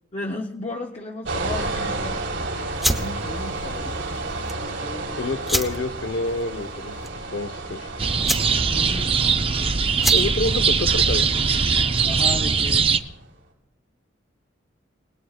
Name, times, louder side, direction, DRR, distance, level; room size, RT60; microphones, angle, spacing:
voice 1, 0.1-2.2 3.0-4.3 4.6-5.2 8.7-9.1 12.0-12.9, left 2 dB, 35° left, 2 dB, 0.7 m, -34 dB
sound 1, 1.3-13.0, right 2 dB, 80° right, 5.8 m, -32 dB
Lighter Flicks, 2.7-12.3, equal, ahead, 1.0 m, -31 dB
voice 2, 5.2-7.0 7.3-7.9 10.1-11.3, left 2 dB, 70° left, 11 dB, 0.9 m, -28 dB
sound 2, 8.0-13.0, right 5 dB, 30° right, 0.6 m, -21 dB
29.0 x 19.0 x 2.4 m, 0.93 s
head